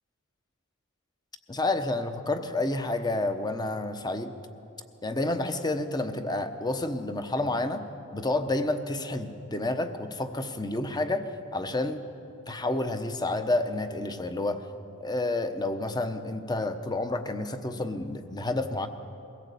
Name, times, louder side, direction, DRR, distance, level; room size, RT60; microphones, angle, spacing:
voice 1, 1.5-4.3 5.0-7.8 8.1-12.0 12.5-14.6 15.0-18.9, left 2 dB, 20° left, 8 dB, 1.0 m, -29 dB
22.0 x 17.0 x 8.4 m, 2.8 s
head